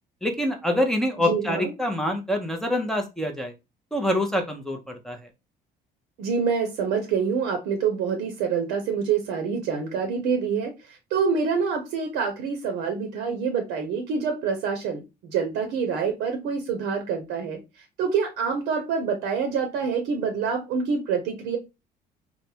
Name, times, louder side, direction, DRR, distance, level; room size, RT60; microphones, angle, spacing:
voice 1, 0.2-3.5 3.9-5.2, left 1 dB, 5° left, 2 dB, 0.5 m, -26 dB
voice 2, 1.2-1.7 6.2-17.6 18.0-21.6, right 6 dB, 85° right, 5 dB, 0.6 m, -26 dB
3.2 x 2.0 x 2.7 m, 0.25 s
cardioid pair, 110°, 17 cm